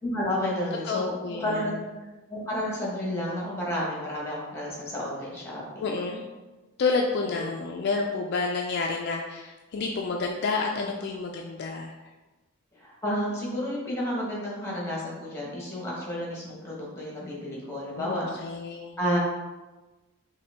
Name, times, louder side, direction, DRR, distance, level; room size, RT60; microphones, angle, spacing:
voice 1, 0.0-1.7 2.3-5.8 7.3-7.4 10.7-10.9 12.7-18.2 19.0-19.2, equal, 10° left, -4 dB, 1.2 m, -31 dB
voice 2, 0.8-1.7 5.8-6.2 6.8-11.9 18.0-19.0, left 4 dB, 50° left, 1 dB, 0.3 m, -29 dB
4.9 x 2.7 x 3.6 m, 1.2 s
head